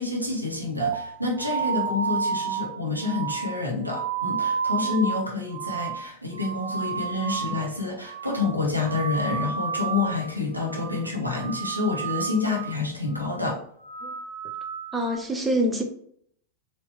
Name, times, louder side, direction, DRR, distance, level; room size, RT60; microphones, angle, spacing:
voice 1, 0.0-13.6, left 3 dB, 85° right, -1 dB, 1.1 m, -28 dB
sound 1, 0.8-7.8 8.0-8.6 8.8-10.3 10.6-11.0 11.3-12.8 13.1-13.5 13.8-15.2, right 6 dB, 60° right, 0.5 m, -31 dB
voice 2, 14.9-15.8, right 1 dB, 10° right, 2 dB, 0.8 m, -26 dB
4.3 x 2.9 x 3.2 m, 0.65 s
figure-of-eight pair, 90°, 0 cm